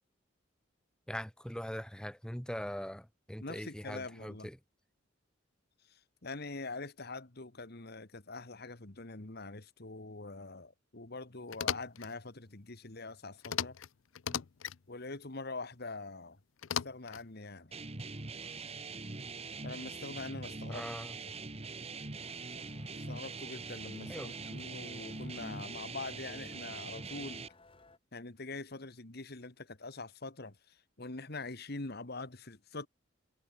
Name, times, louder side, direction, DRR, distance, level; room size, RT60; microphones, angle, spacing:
voice 1, 1.1-4.6 14.3-14.4 20.7-21.2 24.1-24.3, equal, 5° left, 1.6 m, -41 dB
voice 2, 3.4-4.5 5.9-13.8 14.9-16.4 16.8-17.7 19.6-20.8 23.0-27.5 28.1-32.9, left 3 dB, 55° left, 1.8 m, -44 dB
sound 1, 11.5-12.1 13.4-13.9 14.1-14.8 16.6-17.3, left 9 dB, 85° left, 0.6 m, -36 dB
sound 2, 17.7-27.5, right 3 dB, 30° right, 1.6 m, -43 dB
sound 3, 22.1-28.0, left 3 dB, 25° left, 1.8 m, -60 dB
head